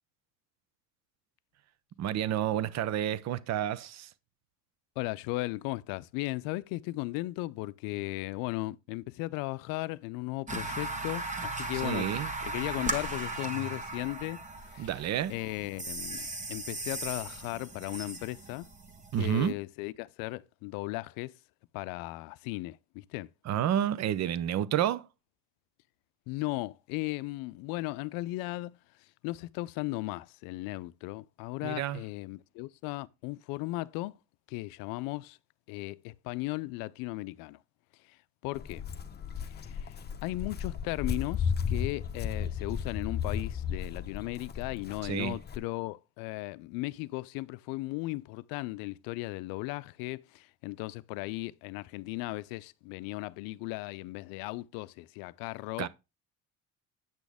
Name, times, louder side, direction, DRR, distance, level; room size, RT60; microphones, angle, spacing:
voice 1, 2.0-4.1 11.7-12.3 14.8-15.3 19.1-19.6 23.4-25.1 31.6-32.0 45.0-45.4 55.8-55.9, right 11 dB, 50° right, 0.7 m, -30 dB
voice 2, 5.0-12.1 12.4-14.4 14.7-14.9 15.3-18.7 19.2-21.3 21.7-23.3 26.3-28.8 29.2-34.2 34.5-35.4 35.7-37.6 38.4-38.8 39.6-55.9, left 20 dB, 85° left, 0.5 m, -36 dB
sound 1, 10.5-19.5, right 2 dB, 20° right, 1.3 m, -37 dB
Walk footsteps, 38.5-45.6, left 7 dB, 30° left, 0.8 m, -34 dB
8.8 x 6.2 x 3.4 m
supercardioid pair, 100°, 34 cm